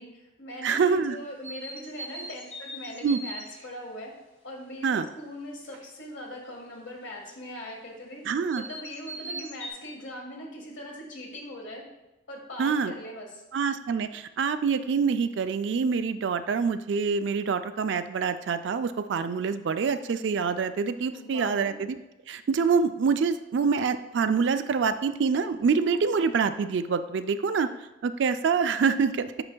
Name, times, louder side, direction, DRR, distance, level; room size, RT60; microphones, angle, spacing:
voice 1, 0.0-4.1 4.4-8.2 8.5-11.8 12.3-13.4 21.1-21.8 26.2-26.3, equal, 75° left, -1 dB, 1.5 m, -41 dB
voice 2, 0.6-1.2 3.0-3.2 4.8-5.1 8.3-8.6 12.6-12.9 13.5-22.0 22.3-27.7 28.0-29.4, right 5 dB, 65° right, 11 dB, 0.3 m, -26 dB
sound 1, 1.4-3.7 5.6-5.8 8.5-9.7, right 1 dB, 35° left, 1.2 m, -39 dB
8.7 x 5.2 x 2.2 m, 0.99 s
head